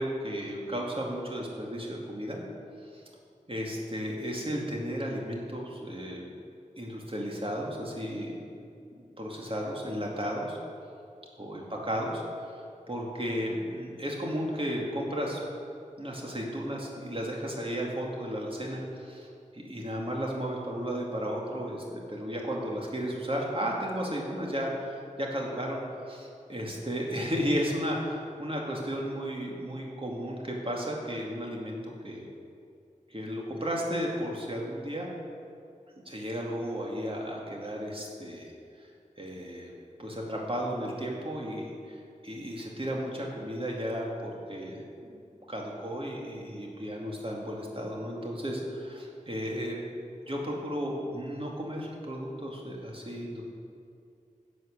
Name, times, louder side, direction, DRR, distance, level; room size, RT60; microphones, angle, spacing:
voice 1, 0.0-2.4 2.9-3.0 3.5-6.2 6.8-8.5 9.2-10.6 11.4-15.4 16.0-19.3 19.5-32.2 33.1-35.1 36.1-38.5 38.8-38.9 39.2-39.7 40.0-45.2 45.5-49.8 50.2-53.4, equal, 40° right, -2 dB, 2.4 m, -34 dB
11.5 x 7.7 x 6.7 m, 2.4 s
wide cardioid pair, 55°, 14 cm